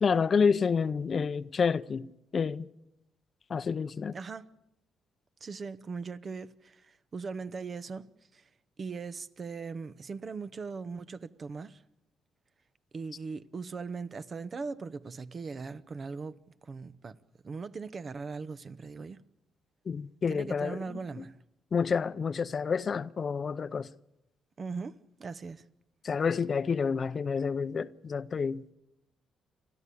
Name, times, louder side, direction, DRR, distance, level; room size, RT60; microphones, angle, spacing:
voice 1, 0.0-2.1 2.3-2.7 3.5-4.2 19.9-21.3 21.7-23.9 26.0-28.7, left 5 dB, 45° left, 0.7 m, -29 dB
voice 2, 4.1-4.5 5.4-8.4 8.8-11.8 12.9-17.2 17.4-19.2 20.3-21.4 24.6-25.6, right 4 dB, 40° right, 0.9 m, -40 dB
30.0 x 12.5 x 8.4 m
cardioid pair, 90°, 0 cm